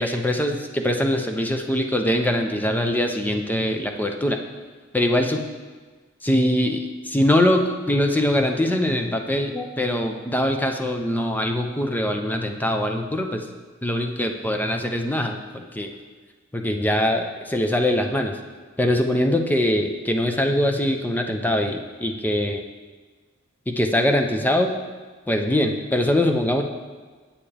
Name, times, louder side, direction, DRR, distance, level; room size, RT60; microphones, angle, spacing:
voice 1, 0.0-4.4 4.9-5.4 6.2-13.4 13.8-15.9 16.5-18.4 18.8-22.6 23.7-24.8 25.3-26.6, left 1 dB, 10° left, 4 dB, 0.6 m, -22 dB
9.4 x 8.6 x 3.4 m, 1.4 s
head